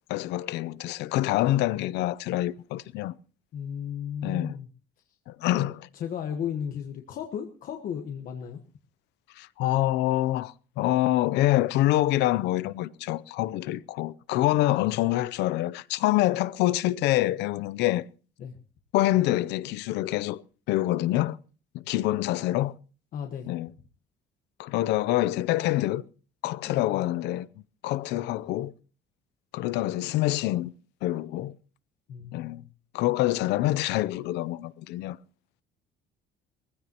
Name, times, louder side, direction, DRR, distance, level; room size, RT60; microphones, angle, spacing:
voice 1, 0.1-3.1 4.2-4.6 5.3-5.8 9.4-18.0 18.9-21.4 21.7-22.7 23.4-23.7 24.6-26.0 26.4-27.5 27.8-28.7 29.5-30.7 31.0-31.5 32.3-32.6 32.9-35.2, left 15 dB, 80° left, 0.6 m, -26 dB
voice 2, 3.5-4.7 5.5-5.7 6.0-8.6 18.4-18.6 23.1-23.5 26.6-27.0 28.1-28.3 32.1-32.7, left 8 dB, 55° left, 1.4 m, -35 dB
20.5 x 15.5 x 2.9 m
cardioid pair, 150°, 17 cm